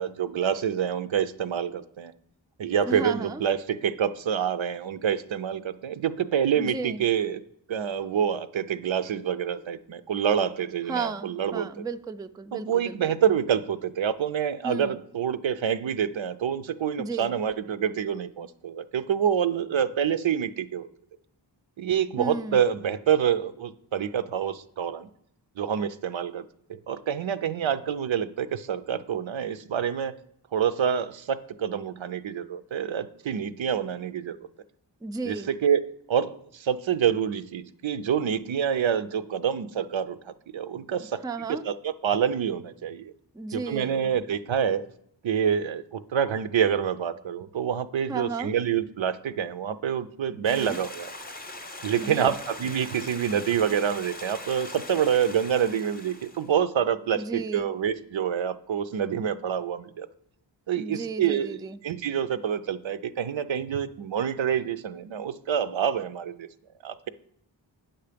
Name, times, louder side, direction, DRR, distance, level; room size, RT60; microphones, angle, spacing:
voice 1, 0.0-2.1 2.6-7.4 7.7-11.7 12.5-20.9 21.8-25.1 25.6-30.1 30.5-34.4 35.3-40.2 40.5-41.2 41.6-43.1 43.5-44.8 45.2-51.1 51.8-60.1 60.7-66.5 66.8-67.1, right 8 dB, 80° right, 12 dB, 0.6 m, -27 dB
voice 2, 2.9-3.4 6.6-7.0 10.9-13.0 14.6-15.0 17.0-17.3 22.2-22.6 35.0-35.5 41.2-41.6 43.3-44.0 48.1-48.5 50.4-50.8 52.0-52.3 57.2-57.7 60.8-61.8, right 3 dB, 10° right, 10 dB, 0.3 m, -34 dB
Stream, 50.4-56.5, left 2 dB, 20° left, 0.7 m, -41 dB
8.9 x 5.8 x 5.0 m, 0.73 s
wide cardioid pair, 75°, 45 cm